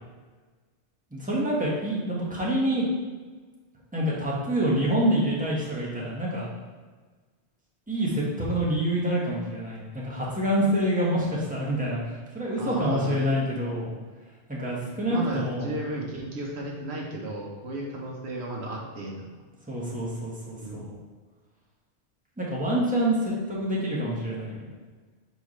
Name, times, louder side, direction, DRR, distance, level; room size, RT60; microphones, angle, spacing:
voice 1, 1.1-2.9 3.9-6.5 7.9-13.9 14.5-15.8 19.7-20.9 22.4-24.6, right 1 dB, 10° right, -6 dB, 1.4 m, -27 dB
voice 2, 12.3-13.3 15.1-19.2 20.6-20.8, right 2 dB, 85° right, -1 dB, 1.3 m, -34 dB
6.8 x 4.7 x 3.2 m, 1.4 s
omnidirectional pair, 1.1 m